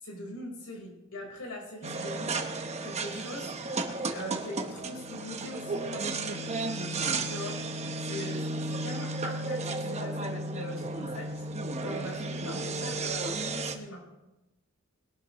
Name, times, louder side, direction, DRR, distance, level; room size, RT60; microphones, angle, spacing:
voice 1, 0.0-2.4 2.8-6.1 7.2-7.6 8.0-11.5 11.8-14.0, left 1 dB, 80° left, 1 dB, 4.4 m, -41 dB
sound 1, 1.8-13.7, right 2 dB, 30° right, 1.0 m, -33 dB
20.5 x 12.0 x 3.1 m, 0.99 s
head